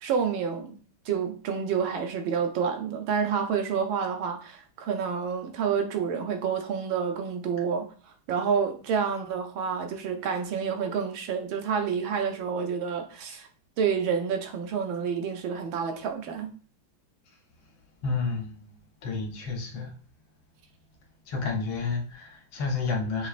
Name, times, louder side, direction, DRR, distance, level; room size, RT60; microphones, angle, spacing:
voice 1, 0.0-0.7 1.1-7.9 8.3-13.5 13.8-16.5, right 6 dB, 75° right, 1.5 m, -28 dB
voice 2, 18.0-18.7 19.0-19.9 21.3-23.3, left 4 dB, 75° left, 1.7 m, -30 dB
6.3 x 2.9 x 2.4 m
omnidirectional pair, 2.2 m